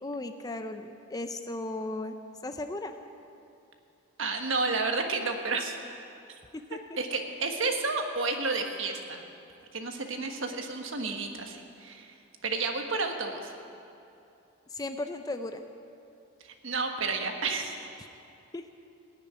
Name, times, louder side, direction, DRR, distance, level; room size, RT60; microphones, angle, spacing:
voice 1, 0.0-2.2 2.4-3.0 6.5-6.8 14.7-15.6 18.5-18.7, left 2 dB, 15° left, 7 dB, 0.5 m, -36 dB
voice 2, 4.2-5.7 7.0-9.2 9.7-12.1 12.4-13.5 16.4-17.7, right 3 dB, 60° right, 4 dB, 1.4 m, -31 dB
19.5 x 6.8 x 9.4 m, 2.7 s
head